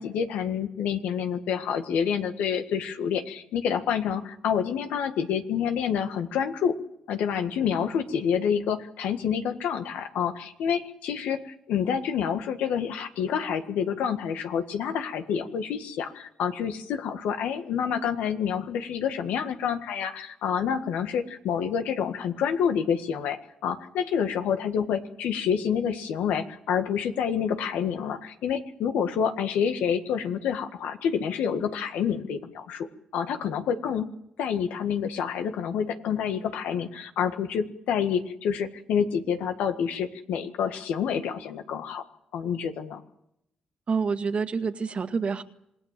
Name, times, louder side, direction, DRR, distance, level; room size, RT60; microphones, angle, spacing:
voice 1, 0.0-6.8 7.1-32.9 33.1-34.1 34.4-42.0 42.3-43.0, left 7 dB, 80° left, 7 dB, 1.7 m, -28 dB
voice 2, 43.9-45.4, right 5 dB, 50° right, 8 dB, 1.9 m, -27 dB
27.0 x 19.0 x 7.6 m, 0.80 s
supercardioid pair, 50°, 3 cm